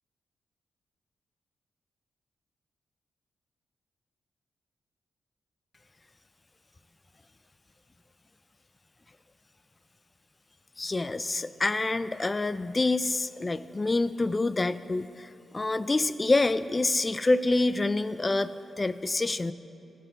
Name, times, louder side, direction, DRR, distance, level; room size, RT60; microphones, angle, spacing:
voice 1, 10.8-19.5, left 2 dB, 20° left, 14 dB, 0.3 m, -27 dB
15.5 x 7.8 x 4.0 m, 2.9 s
wide cardioid pair, 125°, 0 cm